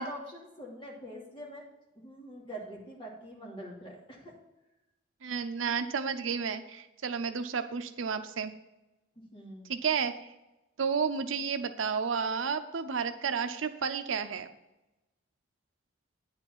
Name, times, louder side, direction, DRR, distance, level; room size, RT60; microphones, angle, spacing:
voice 1, 0.0-1.7 2.0-4.3 9.2-9.6, right 1 dB, 25° left, -4 dB, 2.6 m, -44 dB
voice 2, 5.2-8.5 9.7-10.1 10.8-14.5, right 6 dB, 90° right, 8 dB, 0.6 m, -31 dB
9.6 x 4.8 x 7.3 m, 0.97 s
head